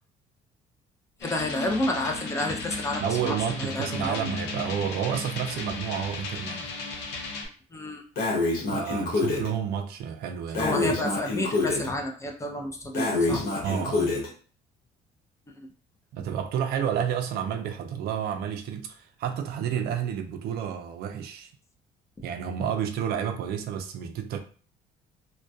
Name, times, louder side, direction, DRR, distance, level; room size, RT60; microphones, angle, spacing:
sound 1, 1.2-7.5, left 3 dB, 85° left, 0.6 m, -35 dB
voice 1, 1.2-4.3 7.7-8.0 10.6-13.5 22.2-22.3, left 1 dB, 15° left, 0.4 m, -30 dB
voice 2, 3.0-6.7 8.7-11.1 13.6-14.1 16.1-21.5 22.2-24.4, right 8 dB, 70° right, 0.4 m, -30 dB
Breathing, 8.2-9.5 10.5-11.9 12.9-14.3, left 2 dB, 65° left, 0.9 m, -26 dB
2.2 x 2.2 x 2.6 m
cardioid pair, 110°, 17 cm